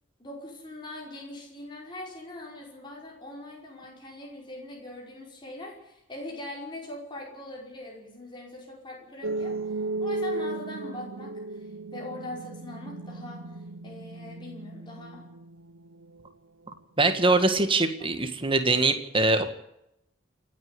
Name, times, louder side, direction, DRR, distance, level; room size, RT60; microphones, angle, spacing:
voice 1, 0.2-9.6 10.0-15.3 18.0-18.1, left 1 dB, 25° left, -2 dB, 5.3 m, -41 dB
sound 1, 9.2-16.2, right 2 dB, 85° right, 1.0 m, -35 dB
voice 2, 17.0-19.4, right 2 dB, 25° right, 8 dB, 1.8 m, -23 dB
28.0 x 9.7 x 9.9 m, 0.82 s
head